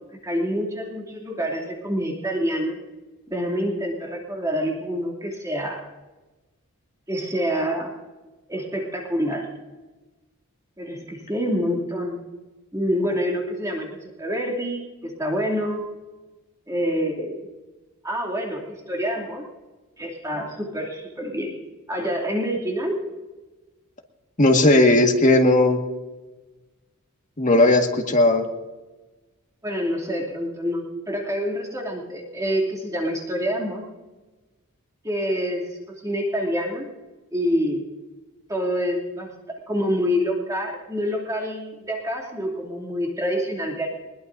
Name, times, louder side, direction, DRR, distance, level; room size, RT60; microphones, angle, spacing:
voice 1, 0.2-2.8 3.3-5.9 7.1-7.9 8.5-9.5 10.8-12.2 12.7-15.8 16.7-17.4 18.0-19.4 20.0-21.6 21.9-23.0 29.6-33.8 35.0-36.9 37.3-37.8 38.5-39.3 39.7-43.9, equal, 15° right, -1 dB, 2.7 m, -27 dB
voice 2, 24.4-25.8 27.4-28.5, left 2 dB, 35° left, 2 dB, 1.8 m, -16 dB
21.5 x 21.5 x 2.7 m, 1.2 s
head